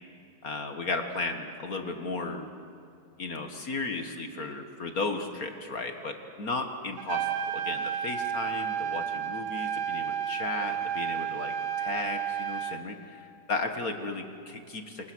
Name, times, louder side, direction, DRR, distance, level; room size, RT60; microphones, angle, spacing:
voice 1, 0.4-2.5 3.2-15.1, left 3 dB, 50° left, 5 dB, 1.1 m, -35 dB
Trumpet, 7.0-12.8, right 8 dB, 70° right, 1.4 m, -31 dB
28.5 x 28.0 x 6.3 m, 2.5 s
omnidirectional pair, 3.9 m